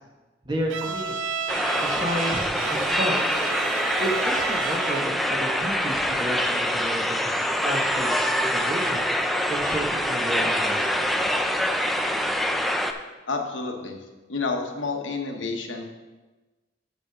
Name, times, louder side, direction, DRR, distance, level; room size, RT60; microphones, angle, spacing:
voice 1, 0.4-1.2 1.8-3.2 4.0-8.1 8.4-9.0 9.5-11.0, right 1 dB, 25° right, 1 dB, 1.1 m, -31 dB
Bowed string instrument, 0.7-5.3, right 7 dB, 85° right, 0.4 m, -32 dB
sound 1, 1.5-12.9, equal, ahead, 0.4 m, -25 dB
voice 2, 13.3-14.0 14.3-15.8, left 4 dB, 75° left, 3 dB, 1.0 m, -29 dB
7.4 x 4.9 x 5.9 m, 1.2 s
head